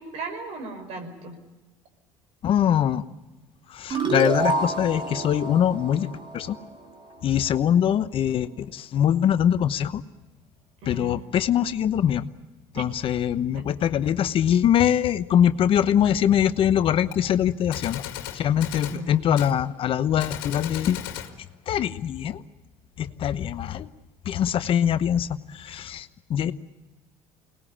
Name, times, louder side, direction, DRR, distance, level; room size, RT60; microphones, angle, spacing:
voice 1, 0.0-1.4 10.8-11.2 12.7-12.8 13.6-13.7 18.9-19.2, right 2 dB, 70° right, 6 dB, 5.4 m, -36 dB
voice 2, 2.4-3.0 3.7-6.1 6.3-6.6 7.2-10.0 10.9-12.2 12.8-18.0 18.3-21.0 21.7-22.4 23.0-23.9 24.2-26.5, left 9 dB, 55° left, 12 dB, 1.0 m, -23 dB
sound 1, 3.9-7.1, right 3 dB, 45° right, 3.4 m, -28 dB
Gunshot gunfire, 17.1-17.2 17.7-19.0 19.4-19.6 20.2-21.3, left 12 dB, 85° left, 2.0 m, -35 dB
23.0 x 20.0 x 8.7 m, 1.1 s
supercardioid pair, 85°, 11 cm